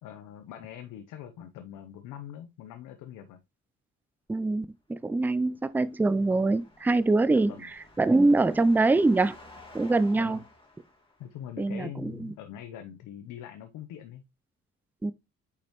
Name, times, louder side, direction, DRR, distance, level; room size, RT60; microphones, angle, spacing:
voice 1, 0.0-3.4 7.3-7.7 10.1-10.4 11.2-14.2, left 10 dB, 90° left, 0.8 m, -43 dB
voice 2, 4.3-7.5 8.0-9.4 9.7-10.4 11.6-12.3 15.0-15.1, right 2 dB, 5° right, 0.4 m, -24 dB
sound 1, 5.4-11.6, left 2 dB, 20° left, 2.7 m, -53 dB
6.7 x 5.2 x 3.0 m
cardioid pair, 90°, 30 cm